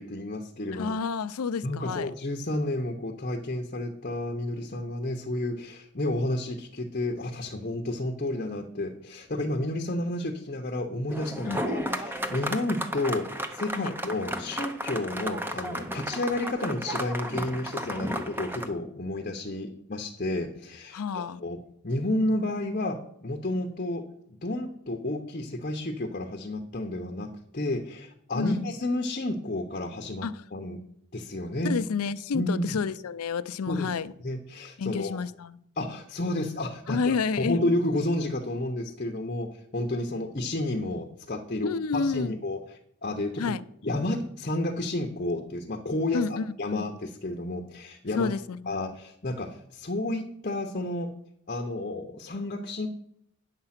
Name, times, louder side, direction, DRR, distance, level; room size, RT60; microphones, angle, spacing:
voice 1, 0.0-0.9 1.6-21.6 21.8-24.0 24.3-27.3 27.5-30.8 31.1-31.8 32.3-32.8 33.7-33.9 34.2-35.2 35.8-42.6 43.0-43.4 43.8-48.3 48.7-51.1 51.5-52.9, left 1 dB, 40° left, 0.8 m, -31 dB
voice 2, 0.7-2.1 11.5-11.6 13.7-13.9 20.9-21.4 28.3-28.7 30.2-30.4 31.6-34.1 34.8-35.6 36.9-37.6 41.6-42.4 43.4-43.6 46.1-47.0 48.1-48.9, left 5 dB, 85° left, 0.5 m, -30 dB
sound 1, 11.1-18.7, equal, 10° right, 0.7 m, -33 dB
9.8 x 6.7 x 5.8 m
head